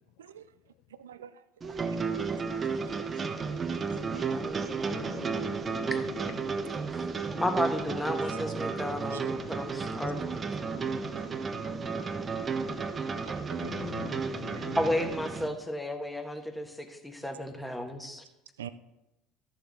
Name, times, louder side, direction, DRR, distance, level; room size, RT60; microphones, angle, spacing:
voice 1, 0.2-0.5 1.0-1.3 1.6-2.0 3.7-3.8 8.3-8.4 8.9-9.2 10.1-10.3 11.2-11.3 12.8-13.0 13.2-14.2 14.5-14.8 18.6-18.7, right 10 dB, 75° right, 14 dB, 0.4 m, -47 dB
sound 1, 1.6-15.5, right 5 dB, 30° right, 0.8 m, -33 dB
voice 2, 4.9-6.1 6.4-6.6 13.6-14.8, left 14 dB, 60° left, 10 dB, 0.4 m, -43 dB
voice 3, 7.4-10.5 14.8-18.2, left 1 dB, 5° left, 5 dB, 1.5 m, -33 dB
13.5 x 7.0 x 3.7 m, 0.93 s
figure-of-eight pair, 65°, 0 cm